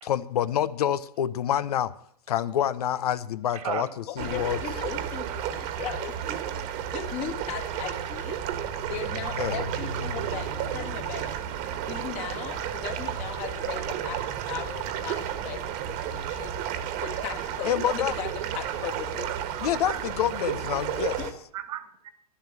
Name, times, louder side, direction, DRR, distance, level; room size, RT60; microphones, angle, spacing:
voice 1, 0.0-1.9 2.3-3.9 4.2-4.6 9.4-9.6 17.6-18.1 19.6-21.2, left 10 dB, 75° left, 15 dB, 0.8 m, -27 dB
voice 2, 3.5-3.9 5.3-5.6 6.8-6.9 18.5-19.0 19.2-20.0 20.3-20.4 21.2-22.1, right 11 dB, 65° right, 11 dB, 2.0 m, -38 dB
voice 3, 4.1-8.4 8.9-11.3 11.8-16.5 17.0-19.3 21.2-21.3, left 9 dB, 40° left, 3 dB, 2.1 m, -37 dB
sound 1, 4.2-21.3, right 9 dB, 40° right, 1.6 m, -32 dB
11.5 x 11.0 x 7.4 m, 0.65 s
hypercardioid pair, 135°, 20 cm